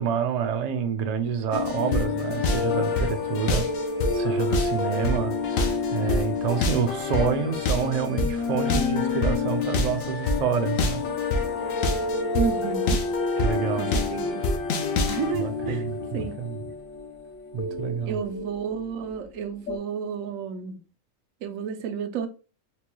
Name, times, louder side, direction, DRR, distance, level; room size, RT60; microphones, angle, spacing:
voice 1, 0.0-3.8 4.1-11.0 13.4-13.9 15.4-16.6 17.5-18.2, right 7 dB, 65° right, 0.4 m, -28 dB
sound 1, 1.5-19.3 19.7-19.8, left 3 dB, 85° left, 1.1 m, -27 dB
voice 2, 12.3-13.0 13.8-14.5 15.1-15.9 16.1-16.3 18.1-20.8 21.4-22.3, right 7 dB, 85° right, 1.0 m, -31 dB
4.2 x 2.2 x 2.9 m
omnidirectional pair, 1.3 m